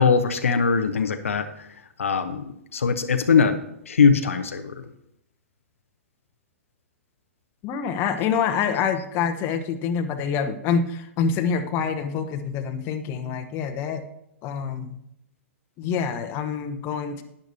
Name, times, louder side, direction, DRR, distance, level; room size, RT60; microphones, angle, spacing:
voice 1, 0.0-1.5 2.0-2.4 2.7-3.5 3.9-4.7, left 5 dB, 75° left, 7 dB, 0.8 m, -20 dB
voice 2, 7.6-14.0 14.4-15.0 15.8-17.2, left 6 dB, 35° left, 7 dB, 1.0 m, -26 dB
12.0 x 10.0 x 2.8 m, 0.79 s
figure-of-eight pair, 110°, 7 cm